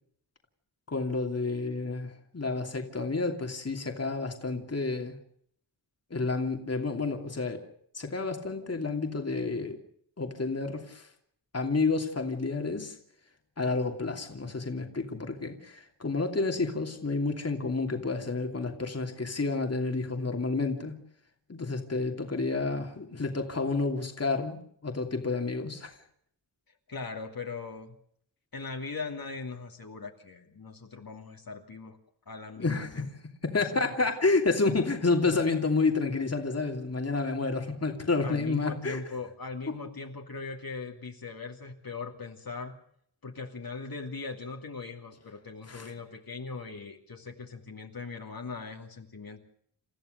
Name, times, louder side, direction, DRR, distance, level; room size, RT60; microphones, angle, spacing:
voice 1, 0.9-5.1 6.1-7.6 7.9-9.8 10.2-11.1 11.5-12.9 13.6-21.0 21.5-25.9 32.6-33.1 33.4-39.0 45.7-45.9, left 3 dB, 35° left, 4 dB, 2.9 m, -30 dB
voice 2, 26.9-27.9 28.5-32.0 32.3-33.1 33.7-34.0 38.2-42.7 43.2-49.4, left 4 dB, 55° left, 2 dB, 2.8 m, -40 dB
29.5 x 14.5 x 6.7 m, 0.66 s
wide cardioid pair, 115°, 42 cm